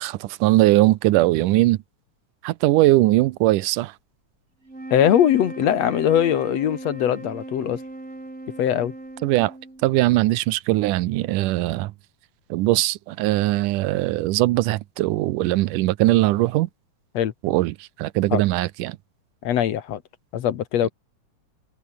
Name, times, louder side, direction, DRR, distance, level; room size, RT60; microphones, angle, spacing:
voice 1, 0.0-1.8 2.4-3.9 9.2-9.5 9.8-11.9 12.5-16.7 17.4-19.0, right 17 dB, 85° right, 2.3 m, -20 dB
sound 1, 4.6-10.1, right 2 dB, 20° right, 5.5 m, -37 dB
voice 2, 4.9-7.8 8.6-8.9 17.1-17.3 18.3-18.4 19.4-20.0 20.3-20.9, left 10 dB, 65° left, 2.2 m, -21 dB
omnidirectional pair, 3.6 m